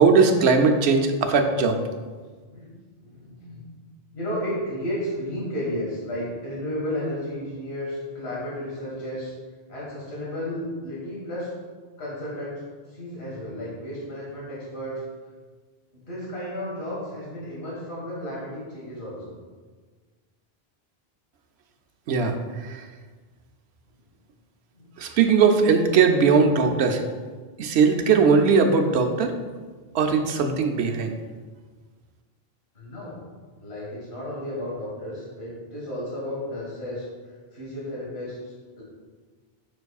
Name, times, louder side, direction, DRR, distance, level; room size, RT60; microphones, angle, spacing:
voice 1, 0.0-1.8 22.1-22.8 25.0-27.0 27.6-29.3 29.9-31.1, right 5 dB, 90° right, 5 dB, 0.9 m, -19 dB
voice 2, 2.4-2.7 3.0-3.6 4.1-9.3 9.7-11.5 12.0-12.6 12.9-15.0 15.9-19.3 24.7-24.9 32.7-33.2 33.6-38.8, left 1 dB, 80° left, -6 dB, 2.0 m, -33 dB
6.9 x 5.9 x 2.3 m, 1.4 s
omnidirectional pair, 1.0 m